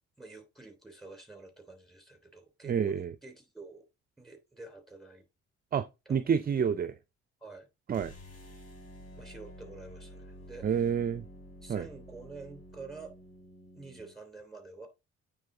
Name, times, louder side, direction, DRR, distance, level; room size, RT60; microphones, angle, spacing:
voice 1, 0.2-3.9 4.2-5.3 6.1-6.2 7.4-7.7 9.2-10.8 11.6-13.2 13.7-14.9, right 3 dB, ahead, 3.0 m, -48 dB
voice 2, 2.6-3.1 5.7-6.9 7.9-8.1 10.6-11.3 11.7-11.9, right 7 dB, 30° right, 0.4 m, -29 dB
sound 1, 7.9-14.2, equal, 55° left, 3.1 m, -50 dB
8.9 x 3.6 x 3.8 m
cardioid pair, 90°, 30 cm